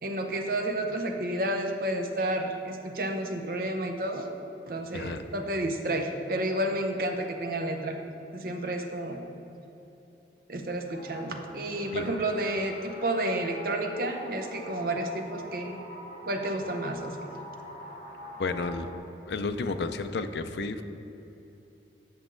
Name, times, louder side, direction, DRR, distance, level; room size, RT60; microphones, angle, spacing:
voice 1, 0.0-4.3 4.7-8.0 8.3-9.2 10.5-15.8 16.3-17.3, right 1 dB, 55° right, 5 dB, 0.7 m, -31 dB
sound 1, 10.9-19.0, left 1 dB, 40° left, 1.3 m, -44 dB
voice 2, 18.4-18.9 19.3-20.8, left 3 dB, 75° left, 9 dB, 0.4 m, -31 dB
8.3 x 7.0 x 3.8 m, 3.0 s
head